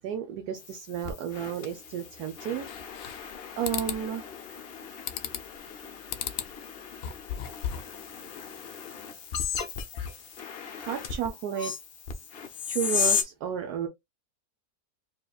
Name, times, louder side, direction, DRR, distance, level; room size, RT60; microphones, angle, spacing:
voice 1, 0.0-2.7 3.6-4.2 10.7-11.7 12.7-13.9, right 9 dB, 75° right, 1.1 m, -32 dB
sound 1, 0.6-13.2, left 7 dB, 55° left, 0.7 m, -35 dB
sound 2, 2.7-3.3 3.6-4.0 5.1-5.6 6.1-6.5 6.9-8.0, left 9 dB, 75° left, 1.0 m, -35 dB
4.6 x 3.0 x 2.3 m
omnidirectional pair, 1.7 m